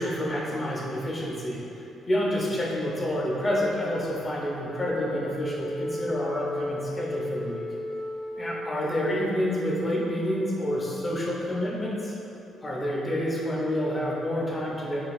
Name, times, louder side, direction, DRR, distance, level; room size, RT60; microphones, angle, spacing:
voice 1, 0.0-1.6 2.1-7.6 8.4-12.1 12.6-15.0, equal, 30° left, -4 dB, 0.8 m, -28 dB
Wind instrument woodwind instrument, 4.5-8.9, left 1 dB, 75° right, 0.7 m, -35 dB
5.1 x 2.8 x 2.6 m, 2.9 s
cardioid pair, 90°, 0 cm